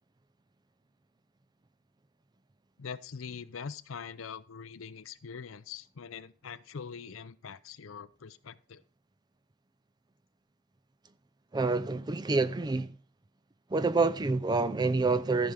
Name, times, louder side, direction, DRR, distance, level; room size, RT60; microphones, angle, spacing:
voice 1, 2.8-8.8, left 6 dB, 85° left, 0.6 m, -43 dB
voice 2, 11.5-13.0 13.7-15.5, right 3 dB, 20° right, 0.4 m, -27 dB
14.0 x 5.0 x 5.8 m
head